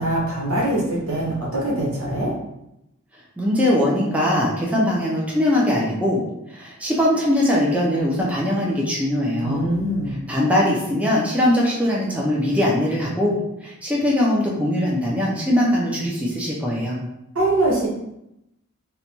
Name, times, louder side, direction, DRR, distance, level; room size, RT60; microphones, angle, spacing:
voice 1, 0.0-2.3 9.4-10.2 17.3-17.9, right 1 dB, 80° right, -4 dB, 1.2 m, -23 dB
voice 2, 3.4-6.2 6.5-9.6 10.3-13.3 13.6-17.0, left 1 dB, 5° right, -4 dB, 0.5 m, -21 dB
3.9 x 2.2 x 2.9 m, 0.84 s
head